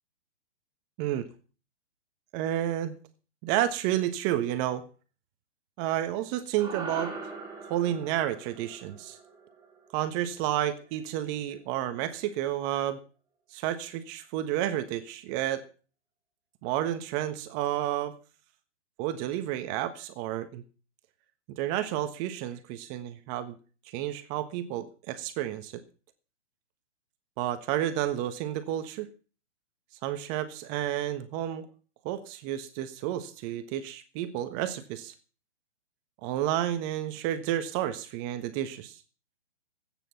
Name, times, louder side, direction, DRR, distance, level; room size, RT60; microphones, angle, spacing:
voice 1, 2.3-3.0 3.4-4.8 5.8-7.1 7.7-9.2 9.9-13.0 13.5-15.6 16.6-18.1 19.0-20.6 21.5-23.6 23.9-25.8 27.4-29.1 30.0-31.7 32.0-35.1 36.2-39.0, right 12 dB, 30° right, 10 dB, 1.4 m, -31 dB
sound 1, 6.6-11.0, right 4 dB, 10° right, 4.5 m, -42 dB
18.5 x 9.4 x 5.9 m, 0.38 s
hypercardioid pair, 135°, 34 cm